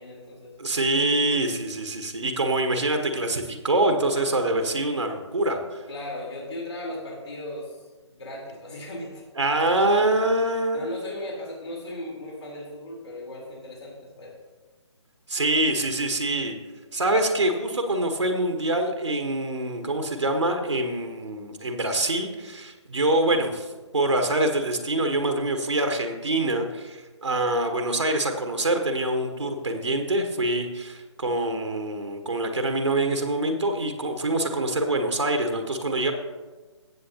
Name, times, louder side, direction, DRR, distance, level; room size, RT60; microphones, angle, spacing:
voice 1, 0.0-0.5 5.9-7.8 8.1-9.2 10.7-14.3, left 1 dB, 65° left, -4 dB, 3.6 m, -37 dB
voice 2, 0.6-5.8 9.4-10.9 15.3-16.6 16.9-23.7 23.9-36.1, right 1 dB, 75° right, 4 dB, 1.4 m, -25 dB
16.0 x 7.6 x 2.9 m, 1.3 s
figure-of-eight pair, 145°, 15 cm